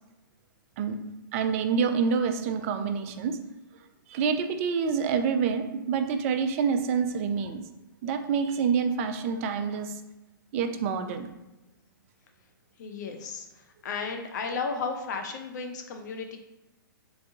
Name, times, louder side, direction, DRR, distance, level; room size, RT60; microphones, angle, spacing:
voice 1, 1.3-3.3 4.1-7.6 8.0-9.9 10.5-11.3, right 6 dB, 40° right, 7 dB, 0.4 m, -27 dB
voice 2, 12.8-16.4, left 4 dB, 55° left, 5 dB, 0.6 m, -34 dB
3.3 x 3.0 x 2.7 m, 1.0 s
hypercardioid pair, 130°, 12 cm